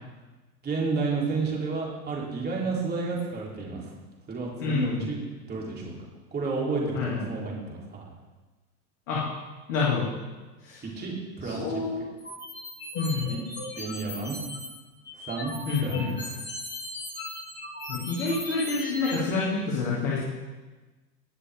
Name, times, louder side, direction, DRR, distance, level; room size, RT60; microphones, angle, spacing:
voice 1, 0.6-3.9 4.3-5.2 5.5-5.9 6.3-8.0 10.8-12.1 13.2-13.4 13.8-14.4 15.3-15.5 15.8-16.4, right 4 dB, 20° right, -4 dB, 3.6 m, -31 dB
voice 2, 4.6-5.1 6.9-7.2 9.1-9.2 9.7-10.1 10.6-10.8 11.4-12.1 12.9-13.3 15.6-16.2 17.9-20.2, left 4 dB, 55° left, -5 dB, 2.8 m, -28 dB
sound 1, 12.2-14.7 15.0-19.2, left 1 dB, 20° left, 2.9 m, -38 dB
19.5 x 6.7 x 3.7 m, 1.2 s
hypercardioid pair, 105°, 47 cm